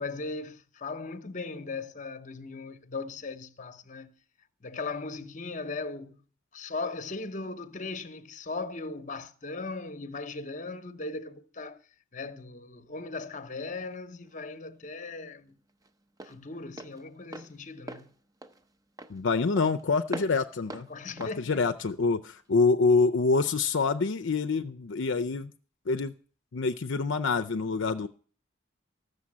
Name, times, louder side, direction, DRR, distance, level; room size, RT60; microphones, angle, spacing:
voice 1, 0.0-4.1 4.6-6.2 6.5-11.8 12.1-15.5 16.2-18.1 20.9-21.6, left 3 dB, 35° left, 0.8 m, -38 dB
Walk footsteps, 13.9-22.6, right 1 dB, 15° right, 0.7 m, -45 dB
voice 2, 19.1-20.9 21.2-25.5 25.9-26.1 26.5-28.1, left 4 dB, 65° left, 0.5 m, -26 dB
14.0 x 6.8 x 8.5 m
head